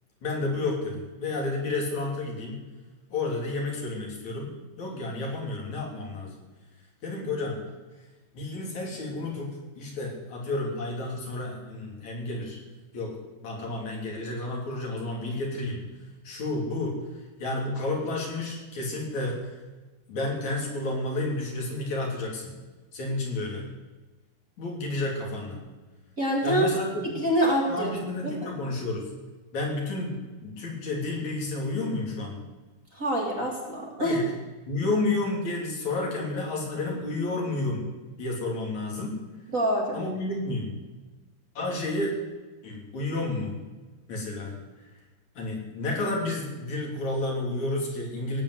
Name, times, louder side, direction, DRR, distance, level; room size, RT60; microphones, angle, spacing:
voice 1, 0.2-2.6 3.1-6.4 7.0-7.6 8.3-9.5 9.8-12.6 12.9-13.2 13.4-15.8 16.2-17.0 17.4-19.4 20.1-22.5 22.9-23.6 24.6-25.6 26.4-27.1 27.7-29.1 29.5-32.4 34.0-34.3 34.7-37.9 38.2-39.2 39.9-40.7 41.6-42.2 42.6-43.5 44.1-44.5 45.4-48.4, left 2 dB, 70° left, -1 dB, 4.6 m, -31 dB
voice 2, 26.2-26.7 27.0-27.9 28.2-28.5 32.9-34.2 39.5-40.0, equal, 30° right, -1 dB, 2.5 m, -26 dB
17.5 x 9.0 x 8.1 m, 1.2 s
omnidirectional pair, 3.5 m